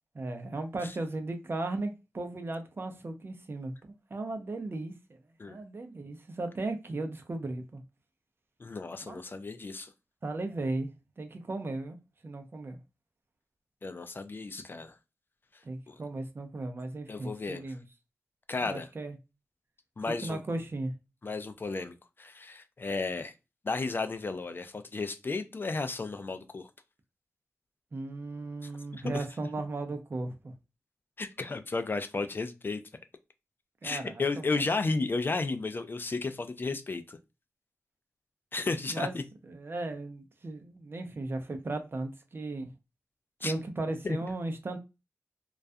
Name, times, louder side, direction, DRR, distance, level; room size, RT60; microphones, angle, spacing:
voice 1, 0.1-3.7 4.1-5.2 5.5-7.8 9.1-9.2 10.2-10.9 11.2-12.0 12.2-12.8 15.6-17.8 18.6-19.2 20.1-20.9 27.9-30.5 33.8-34.6 38.9-39.1 39.4-42.7 43.4-44.8, right 2 dB, 45° right, 0.5 m, -36 dB
voice 2, 8.6-9.9 13.8-14.9 15.9-16.0 17.1-17.6 18.5-18.9 20.0-20.4 21.2-23.3 23.6-26.7 28.9-29.2 31.2-32.8 33.8-37.2 38.5-39.2 43.4-43.5 44.0-44.2, left 3 dB, 40° left, 0.3 m, -33 dB
2.3 x 2.2 x 2.5 m
cardioid pair, 55°, 5 cm